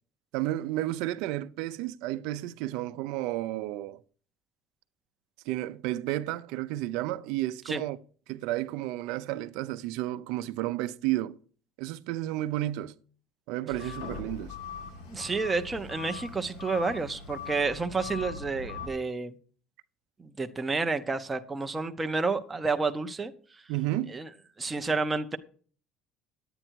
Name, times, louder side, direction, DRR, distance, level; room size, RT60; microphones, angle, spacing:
voice 1, 0.3-4.0 5.5-8.0 8.3-11.4 11.8-13.0 13.5-14.5 23.7-24.2, right 15 dB, 70° right, 0.6 m, -32 dB
sound 1, 13.7-18.9, left 5 dB, 85° left, 2.0 m, -41 dB
voice 2, 15.1-19.4 20.2-23.6 24.1-24.3 24.6-25.4, right 4 dB, 10° right, 0.6 m, -30 dB
11.0 x 8.9 x 4.6 m
cardioid pair, 175°, 0 cm